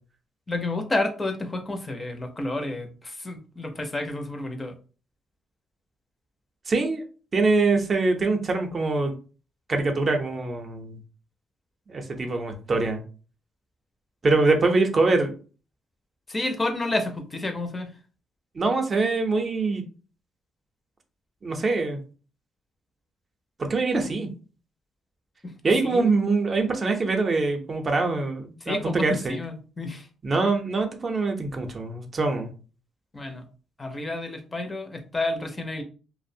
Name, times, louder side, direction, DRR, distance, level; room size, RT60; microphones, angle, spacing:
voice 1, 0.5-4.8 16.3-17.9 25.4-25.5 25.8-26.1 28.6-30.1 33.1-33.4 33.8-35.8, left 2 dB, 25° left, 5 dB, 0.5 m, -30 dB
voice 2, 6.7-7.0 7.3-9.1 9.7-11.0 11.9-13.0 14.2-15.3 18.5-19.8 21.4-22.0 23.6-24.3 25.6-29.4 30.2-32.5, right 3 dB, 35° right, 4 dB, 0.5 m, -24 dB
2.4 x 2.0 x 2.6 m, 0.37 s
cardioid pair, 90°, 0 cm